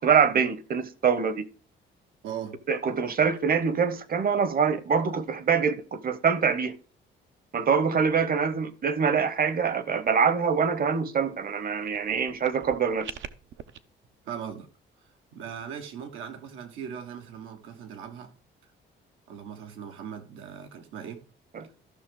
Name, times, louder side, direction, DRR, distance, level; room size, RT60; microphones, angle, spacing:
voice 1, 0.0-1.4 2.7-6.7 7.5-13.1 21.5-21.7, right 6 dB, 45° right, 1.0 m, -24 dB
voice 2, 2.2-2.6 14.2-14.7 15.3-18.4 19.3-21.2, right 8 dB, 90° right, 1.4 m, -39 dB
sound 1, 11.9-13.8, right 9 dB, 70° right, 0.7 m, -43 dB
13.5 x 6.0 x 3.8 m
cardioid pair, 90°, 20 cm